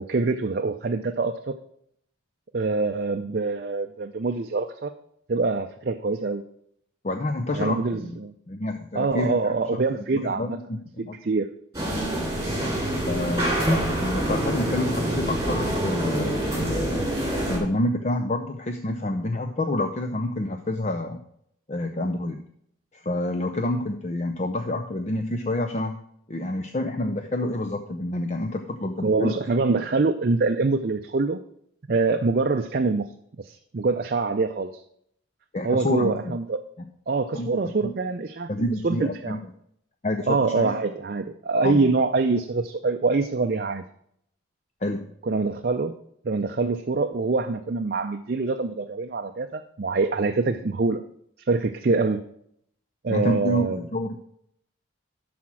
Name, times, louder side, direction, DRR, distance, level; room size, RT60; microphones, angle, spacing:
voice 1, 0.0-1.5 2.5-4.9 5.3-6.4 7.5-8.3 8.9-10.6 11.0-11.5 29.0-31.4 31.9-33.1 33.4-34.8 35.6-36.6 37.1-38.5 38.8-39.4 40.3-43.8 45.2-46.0 46.2-51.0 51.5-52.2 53.0-53.8, right 3 dB, 50° right, 6 dB, 0.5 m, -25 dB
voice 2, 7.0-8.2 8.5-9.6 10.1-11.2 13.1-13.7 14.0-17.0 17.5-21.2 21.7-22.4 23.0-26.0 26.3-29.4 35.5-36.3 37.3-37.9 38.5-39.4 40.0-40.8 41.6-41.9 44.8-45.1 53.1-54.2, left 1 dB, 35° left, 6 dB, 0.6 m, -28 dB
sound 1, 11.7-17.6, right 1 dB, 15° right, 3.3 m, -25 dB
12.0 x 4.3 x 6.1 m, 0.70 s
head